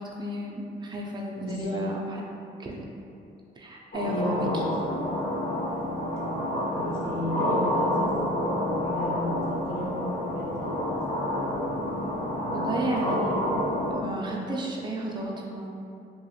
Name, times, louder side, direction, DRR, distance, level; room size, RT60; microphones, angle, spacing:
voice 1, 0.0-2.3 2.6-2.8 3.5-4.7 12.5-13.6 13.9-15.7, right 1 dB, 20° right, -1 dB, 0.4 m, -33 dB
voice 2, 1.3-1.8 4.0-4.7 6.7-8.1 8.8-9.4 9.6-11.0, equal, 85° left, -6 dB, 0.8 m, -34 dB
sound 1, 3.9-13.9, left 1 dB, 45° left, 0.9 m, -28 dB
2.9 x 2.8 x 2.3 m, 2.6 s
cardioid pair, 90°, 20 cm